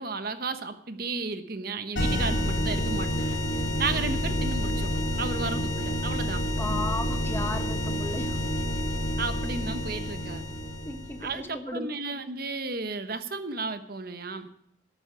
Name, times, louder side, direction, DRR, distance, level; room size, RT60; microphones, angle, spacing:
voice 1, 0.0-3.2 3.6-6.4 9.2-10.5 11.2-14.5, right 3 dB, 50° right, 9 dB, 1.1 m, -33 dB
sound 1, 2.0-11.4, equal, 80° left, 3.5 m, -29 dB
voice 2, 6.6-8.4 10.9-11.9, left 2 dB, 10° left, 7 dB, 1.0 m, -35 dB
13.0 x 12.0 x 5.0 m, 0.74 s
head